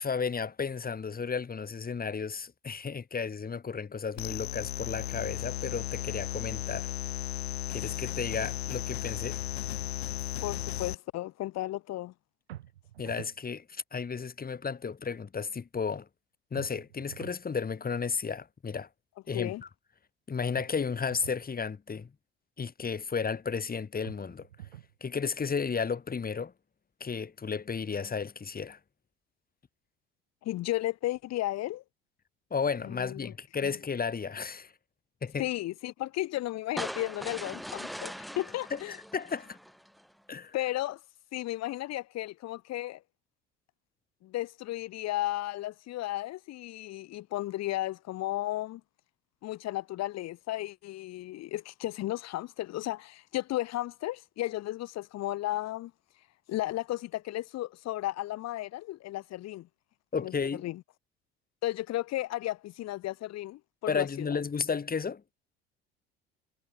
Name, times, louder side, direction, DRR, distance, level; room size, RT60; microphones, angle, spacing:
voice 1, 0.0-6.9 7.7-9.4 13.0-16.1 16.5-18.9 19.3-19.7 20.3-22.1 22.6-24.5 25.0-26.5 27.0-28.8 32.5-34.7 35.2-35.5 38.7-39.6 40.3-40.6 60.1-60.7 63.9-65.2, left 5 dB, 30° left, 7.1 m, -33 dB
sound 1, 4.2-11.0, left 13 dB, 75° left, 2.3 m, -35 dB
voice 2, 10.4-12.1 19.3-19.6 30.4-31.8 32.8-33.3 33.6-33.7 35.4-38.9 40.5-41.0 41.3-43.0 44.2-48.8 49.4-55.9 56.5-59.7 60.2-60.3 60.6-60.8 61.6-64.3, left 16 dB, 55° left, 5.9 m, -34 dB
sound 2, 12.5-13.4 16.5-17.4 20.5-21.4 24.0-25.0, right 13 dB, 75° right, 5.4 m, -47 dB
sound 3, 36.8-40.0, equal, ahead, 7.6 m, -40 dB
figure-of-eight pair, 65°, 31 cm